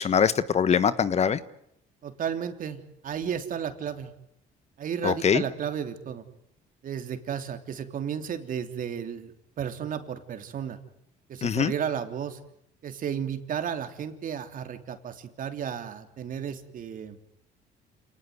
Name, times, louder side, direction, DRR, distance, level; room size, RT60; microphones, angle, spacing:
voice 1, 0.0-1.4 5.0-5.4 11.4-11.7, left 7 dB, 40° left, 15 dB, 1.4 m, -23 dB
voice 2, 2.0-4.1 4.8-6.2 6.8-10.8 11.3-12.4 12.8-17.2, right 8 dB, 55° right, 8 dB, 3.3 m, -33 dB
29.0 x 19.0 x 9.6 m, 0.77 s
cardioid pair, 110°, 17 cm